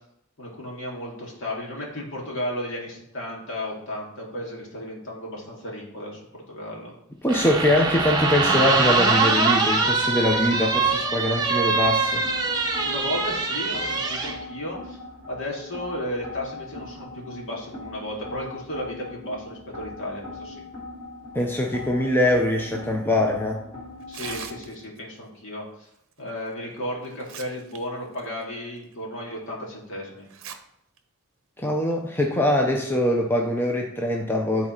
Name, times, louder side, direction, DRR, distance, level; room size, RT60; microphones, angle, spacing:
voice 1, 0.4-6.9 12.8-15.0 15.3-20.6 24.1-25.9 26.2-30.3, left 1 dB, 60° left, -2 dB, 2.4 m, -34 dB
voice 2, 7.2-12.3 21.3-23.6 31.6-34.7, left 1 dB, 10° left, 1 dB, 0.6 m, -23 dB
sound 1, 7.3-14.3, right 4 dB, 20° right, 0.9 m, -23 dB
sound 2, 10.2-24.6, left 2 dB, 30° left, 3.3 m, -40 dB
Tearing, 24.0-25.0 26.5-26.6 27.0-27.8 28.1-28.3 28.9-29.0 30.3-30.6 31.0-31.1 31.9-32.2, right 8 dB, 60° right, 0.7 m, -39 dB
11.0 x 4.2 x 4.4 m, 0.77 s
head